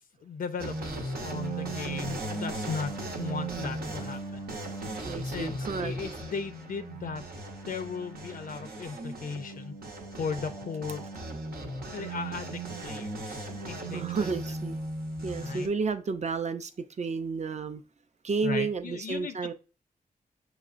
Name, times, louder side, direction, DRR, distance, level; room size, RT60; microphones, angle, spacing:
voice 1, 0.0-4.4 5.2-7.3 7.7-9.7 10.1-11.1 11.9-14.3 15.4-15.7 18.4-19.5, left 5 dB, 70° left, 0.4 m, -37 dB
sound 1, 0.6-15.7, right 2 dB, 90° right, 0.9 m, -37 dB
voice 2, 5.0-5.9 13.3-14.8 15.2-17.8 18.2-19.5, right 4 dB, 50° right, 0.5 m, -32 dB
6.4 x 3.1 x 2.4 m
wide cardioid pair, 75°, 15 cm